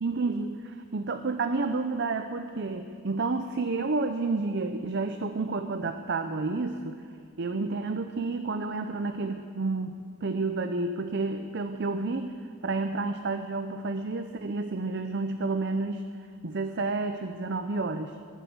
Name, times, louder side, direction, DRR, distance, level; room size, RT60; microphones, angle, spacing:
voice 1, 0.0-7.0 7.4-16.0 16.4-18.2, right 3 dB, 50° right, 8 dB, 0.6 m, -30 dB
20.0 x 8.3 x 7.8 m, 2.2 s
head